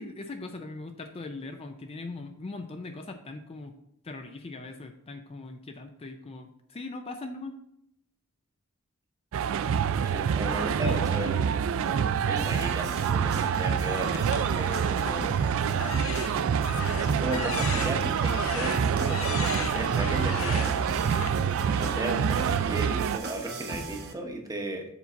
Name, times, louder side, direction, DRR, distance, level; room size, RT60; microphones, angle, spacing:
voice 1, 0.0-3.7 4.0-7.6 10.4-11.0 11.6-11.9, left 3 dB, 30° left, 6 dB, 0.4 m, -40 dB
sound 1, 9.3-23.2, right 7 dB, 65° right, 0.3 m, -27 dB
voice 2, 10.0-11.6 12.3-15.3 17.0-20.8 21.7-24.9, right 1 dB, 15° right, 2 dB, 0.9 m, -35 dB
sound 2, 12.4-24.1, right 3 dB, 50° right, 0.9 m, -38 dB
sound 3, 14.1-15.3 15.7-21.3, left 6 dB, 70° left, 0.7 m, -37 dB
7.1 x 4.0 x 4.5 m, 0.78 s
head